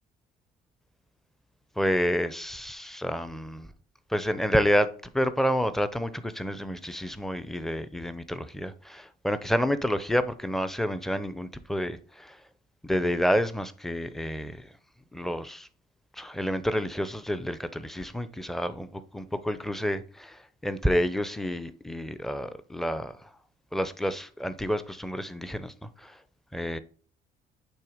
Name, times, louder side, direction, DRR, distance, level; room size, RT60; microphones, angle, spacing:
voice 1, 1.8-3.7 4.1-4.9 5.1-12.4 12.8-14.7 15.1-15.7 16.1-23.3 23.7-26.2 26.5-26.8, equal, ahead, 0.6 m, -29 dB
9.0 x 3.4 x 5.0 m
cardioid pair, 110°, 17 cm